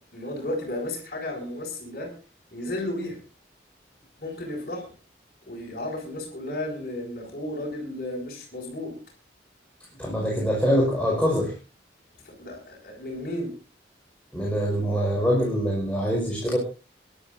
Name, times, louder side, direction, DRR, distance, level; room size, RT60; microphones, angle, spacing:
voice 1, 0.1-2.1 2.5-3.2 4.2-4.9 5.4-9.0 12.2-13.5, left 1 dB, 50° left, -6 dB, 6.3 m, -33 dB
voice 2, 10.0-11.5 14.3-16.6, equal, 5° left, -4 dB, 5.1 m, -24 dB
27.5 x 12.5 x 2.7 m, 0.33 s
head